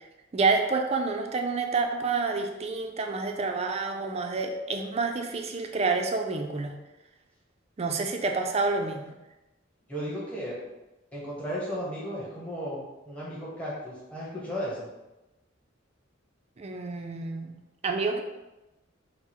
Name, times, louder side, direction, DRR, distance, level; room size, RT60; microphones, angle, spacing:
voice 1, 0.3-6.7 7.8-9.1 16.6-17.5 17.8-18.2, right 4 dB, 30° right, 4 dB, 0.4 m, -28 dB
voice 2, 9.9-10.6 11.1-14.9, equal, 5° left, -7 dB, 1.0 m, -35 dB
4.5 x 2.0 x 4.4 m, 1.0 s
head